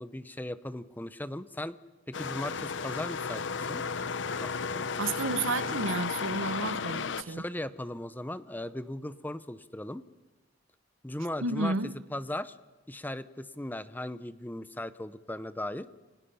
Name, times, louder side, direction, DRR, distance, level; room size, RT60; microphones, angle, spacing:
voice 1, 0.0-1.8 2.1-3.8 4.4-4.9 7.2-10.0 11.0-11.7 12.1-12.6 12.9-15.9, left 1 dB, 10° left, 14 dB, 0.8 m, -37 dB
sound 1, 2.1-7.2, left 5 dB, 65° left, 0.8 m, -33 dB
voice 2, 5.0-7.4 11.4-11.9, right 3 dB, 85° right, 14 dB, 1.1 m, -31 dB
30.0 x 24.0 x 5.7 m, 1.2 s
head